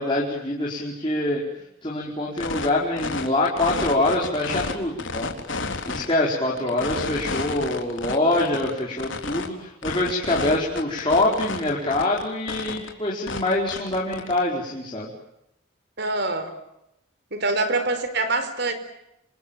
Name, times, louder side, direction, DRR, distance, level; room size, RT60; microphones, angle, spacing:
voice 1, 0.0-1.4 1.8-5.3 5.9-15.1, left 2 dB, 25° left, -4 dB, 4.6 m, -25 dB
sound 1, 2.4-2.7 3.0-4.7 5.0-6.1 6.6-9.5 9.8-12.2 12.5-12.9 13.3-14.4, left 3 dB, 70° left, 3.7 m, -30 dB
voice 2, 16.0-16.5 17.3-18.7, right 2 dB, 55° right, 10 dB, 4.6 m, -25 dB
28.0 x 27.0 x 7.5 m, 0.84 s
head